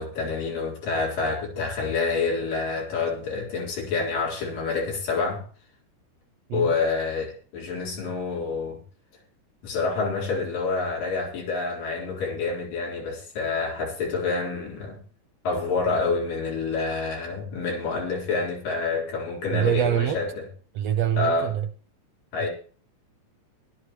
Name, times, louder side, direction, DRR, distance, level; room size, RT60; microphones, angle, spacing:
voice 1, 0.0-5.4 6.5-8.8 9.6-15.0 15.4-20.4 21.2-21.5 22.3-22.5, left 4 dB, 75° left, 6.0 m, -27 dB
voice 2, 19.5-20.2 20.7-21.7, right 11 dB, 80° right, 1.5 m, -25 dB
20.5 x 11.5 x 3.1 m
omnidirectional pair, 3.9 m